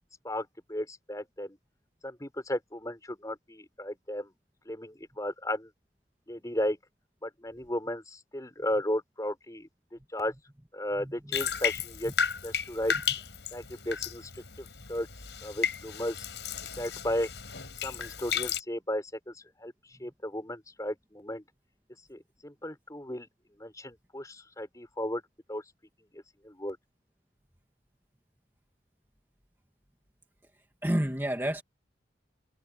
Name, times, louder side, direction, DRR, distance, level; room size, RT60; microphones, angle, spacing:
voice 1, 0.2-1.6 2.0-4.3 4.7-5.7 6.3-6.8 7.2-10.3 10.7-12.1 12.4-12.9 13.5-15.1 15.4-16.2 16.8-17.3 17.8-21.4 22.1-23.3 23.6-25.2 25.5-25.6 26.1-26.8, left 1 dB, 20° left, 6.1 m, -35 dB
voice 2, 11.0-11.4 20.0-20.1 30.8-31.6, equal, 15° right, 2.2 m, -30 dB
Bathtub (filling or washing), 11.3-18.6, left 7 dB, 80° left, 5.4 m, -34 dB
head